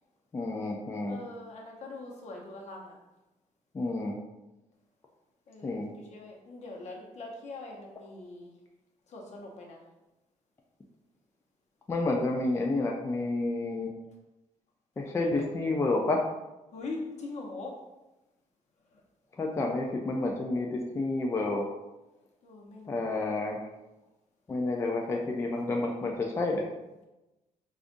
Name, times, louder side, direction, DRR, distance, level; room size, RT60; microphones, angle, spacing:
voice 1, 0.3-1.2 3.7-4.2 5.6-5.9 11.9-13.9 15.0-16.2 19.4-21.7 22.9-23.6 24.5-26.6, left 2 dB, 20° left, 0 dB, 0.3 m, -30 dB
voice 2, 1.1-3.0 5.5-8.5 9.1-9.8 16.7-17.7 18.9-19.0 22.4-23.2, left 2 dB, 55° left, 0 dB, 0.8 m, -42 dB
5.0 x 2.4 x 2.5 m, 1.0 s
cardioid pair, 145°, 13 cm